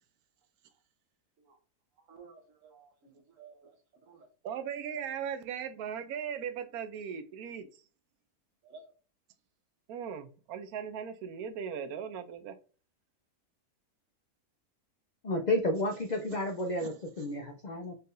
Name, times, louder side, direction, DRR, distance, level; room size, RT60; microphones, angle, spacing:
voice 1, 2.1-3.7 4.1-4.3 8.6-8.9, right 4 dB, 60° right, 4 dB, 1.3 m, -54 dB
voice 2, 4.4-7.7 9.9-12.6, right 7 dB, 80° right, 10 dB, 1.1 m, -38 dB
voice 3, 15.2-18.0, left 1 dB, 90° left, 3 dB, 0.3 m, -31 dB
4.1 x 3.8 x 2.5 m, 0.37 s
omnidirectional pair, 1.6 m